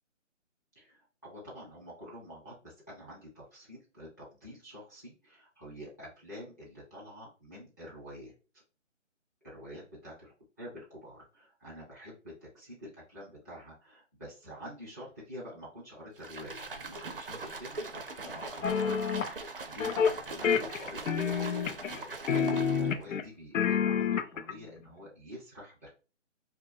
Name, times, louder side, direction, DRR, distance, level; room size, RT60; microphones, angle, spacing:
voice 1, 0.7-8.3 9.4-10.3 10.6-25.9, equal, 15° left, -6 dB, 0.5 m, -47 dB
sound 1, 16.2-23.0, right 3 dB, 50° right, 0.4 m, -41 dB
sound 2, 18.6-19.3 19.8-20.2 20.4-22.0 22.3-23.2 23.5-24.5, left 7 dB, 85° left, 0.5 m, -28 dB
2.7 x 2.2 x 2.7 m, 0.33 s
hypercardioid pair, 160°, 38 cm